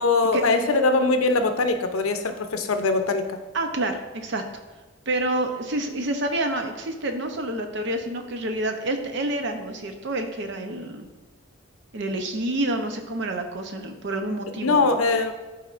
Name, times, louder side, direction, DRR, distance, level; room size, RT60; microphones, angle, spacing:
voice 1, 0.0-3.4 14.6-15.3, left 3 dB, 80° left, 7 dB, 0.7 m, -22 dB
voice 2, 3.5-4.4 5.1-11.1 11.9-14.9, right 1 dB, 55° right, 5 dB, 0.7 m, -28 dB
11.5 x 4.3 x 2.5 m, 1.2 s
head